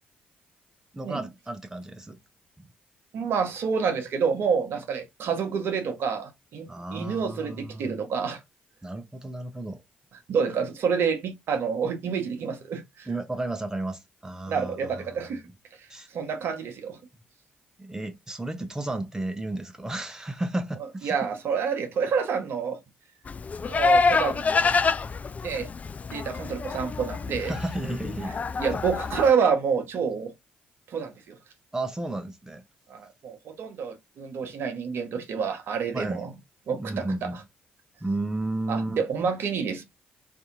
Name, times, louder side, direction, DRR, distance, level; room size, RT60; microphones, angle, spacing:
voice 1, 0.9-2.2 6.7-8.0 8.8-9.8 13.1-14.8 15.9-16.1 17.8-21.2 27.4-28.4 28.7-28.8 31.7-32.6 35.9-36.2 36.7-37.4 38.0-39.0, right 2 dB, 10° right, 0.7 m, -33 dB
voice 2, 3.1-8.4 10.3-13.1 14.5-15.4 16.1-17.0 21.0-22.8 23.7-24.6 25.4-25.7 26.1-27.5 28.6-30.3 30.9-31.4 32.9-36.3 36.7-37.4 38.7-39.8, right 6 dB, 55° right, 0.8 m, -28 dB
Livestock farm animals working animals, 23.3-29.3, left 4 dB, 30° left, 0.3 m, -26 dB
2.6 x 2.6 x 3.8 m
figure-of-eight pair, 40°, 5 cm